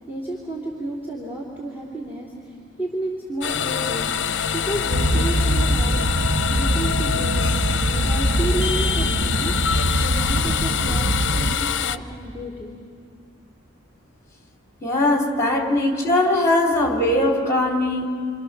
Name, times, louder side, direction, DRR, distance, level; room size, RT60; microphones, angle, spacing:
voice 1, 0.1-4.1 4.5-6.0 6.5-7.6 8.0-9.5 10.0-12.7, right 1 dB, 10° right, -3 dB, 3.0 m, -31 dB
sound 1, 3.4-12.0, left 8 dB, 60° left, 0.6 m, -25 dB
sound 2, 4.9-11.6, right 1 dB, 45° right, 0.8 m, -23 dB
voice 2, 14.8-18.1, left 1 dB, 15° left, 0 dB, 2.9 m, -20 dB
28.5 x 27.0 x 6.6 m, 2.2 s
head